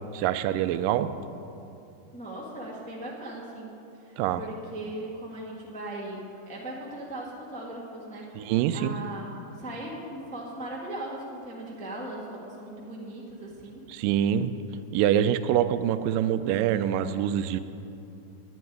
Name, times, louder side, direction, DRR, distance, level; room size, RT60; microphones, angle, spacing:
voice 1, 0.1-1.1 4.2-4.4 8.4-8.9 13.9-14.5 14.9-17.6, right 10 dB, 85° right, 12 dB, 2.2 m, -25 dB
voice 2, 2.1-8.4 8.7-13.8, right 1 dB, 5° left, -3 dB, 0.5 m, -38 dB
10.5 x 7.8 x 9.5 m, 2.7 s
omnidirectional pair, 3.8 m